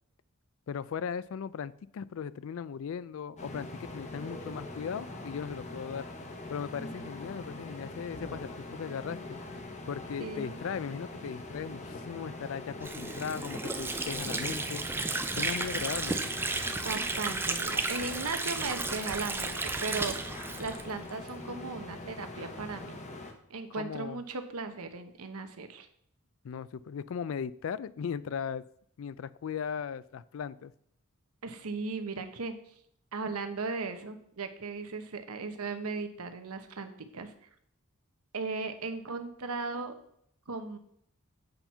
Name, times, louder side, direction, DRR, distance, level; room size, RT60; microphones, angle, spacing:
voice 1, 0.7-6.1 6.5-9.4 9.9-14.9 15.4-16.3 23.8-24.2 26.4-28.6 29.0-30.7, left 7 dB, 60° left, 18 dB, 0.3 m, -37 dB
sound 1, 3.4-23.3, left 2 dB, 30° left, 0.9 m, -43 dB
voice 2, 10.2-10.6 15.7-15.8 16.8-19.5 19.8-20.2 20.6-23.0 23.5-25.9 31.4-32.5 33.1-37.3 38.3-39.9 40.5-40.8, right 4 dB, 85° right, 8 dB, 0.9 m, -37 dB
Water / Sink (filling or washing), 12.8-21.4, right 3 dB, 10° right, 0.5 m, -33 dB
7.9 x 4.4 x 5.5 m, 0.68 s
head